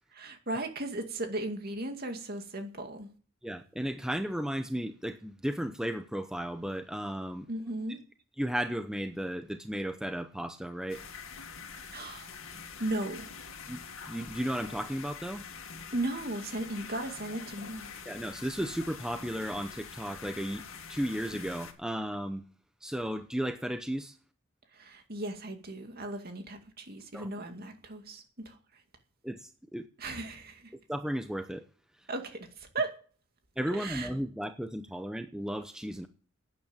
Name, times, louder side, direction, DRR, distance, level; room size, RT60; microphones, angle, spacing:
voice 1, 0.1-3.1 7.5-8.0 11.9-12.3 12.8-13.3 15.9-17.9 24.7-28.8 30.0-30.7 32.1-33.0 33.7-34.1, right 2 dB, 50° right, 2.3 m, -36 dB
voice 2, 3.4-7.5 8.4-11.0 13.7-15.4 18.1-22.4 22.8-24.2 27.1-27.3 29.2-29.9 30.7-31.7 32.0-32.1 33.6-36.1, equal, 5° right, 0.7 m, -34 dB
sound 1, 10.9-21.7, left 6 dB, 90° left, 2.2 m, -45 dB
12.0 x 9.3 x 8.8 m
head